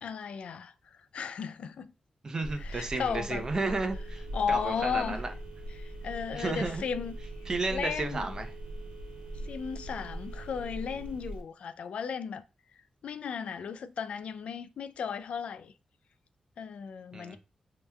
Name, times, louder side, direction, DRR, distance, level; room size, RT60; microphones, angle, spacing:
voice 1, 0.0-1.9 2.6-3.5 4.3-5.2 5.8-7.1 7.7-8.3 9.4-12.4 13.0-15.7 16.6-17.4, left 6 dB, 80° left, 0.3 m, -35 dB
voice 2, 2.2-5.3 6.3-6.8 7.5-8.5 17.1-17.4, right 3 dB, 35° right, 0.6 m, -33 dB
Telephone, 2.4-11.4, right 1 dB, 75° right, 1.0 m, -41 dB
5.3 x 2.9 x 2.2 m
wide cardioid pair, 130°, 2 cm